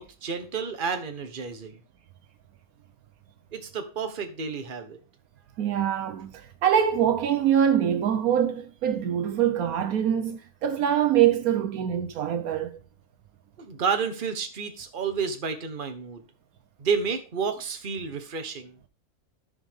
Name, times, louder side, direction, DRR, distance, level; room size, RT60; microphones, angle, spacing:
voice 1, 0.0-1.7 3.5-5.0 13.6-16.2 16.8-18.8, right 5 dB, 35° right, 1.2 m, -30 dB
voice 2, 5.6-12.8, right 9 dB, 75° right, 1.2 m, -24 dB
14.0 x 5.1 x 3.6 m
omnidirectional pair, 1.6 m